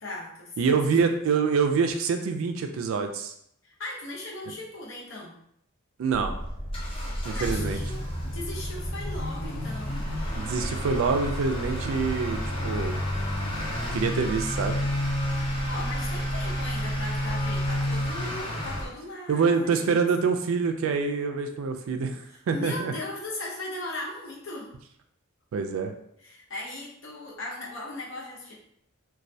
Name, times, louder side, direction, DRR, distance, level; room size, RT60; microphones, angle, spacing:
voice 1, 0.0-1.0 3.6-5.3 7.4-10.1 15.4-20.0 22.3-24.7 26.2-28.5, left 2 dB, 65° left, -3 dB, 0.7 m, -38 dB
voice 2, 0.6-3.3 6.0-6.4 7.2-7.8 10.3-13.0 13.9-14.8 19.3-22.2 22.5-22.9 25.5-25.9, right 5 dB, 70° right, 6 dB, 0.3 m, -26 dB
sound 1, 6.1-18.4, equal, 30° right, 0.7 m, -37 dB
Motor vehicle (road) / Accelerating revving vroom, 6.2-18.9, equal, 25° left, 0.5 m, -31 dB
2.3 x 2.1 x 2.6 m, 0.71 s
head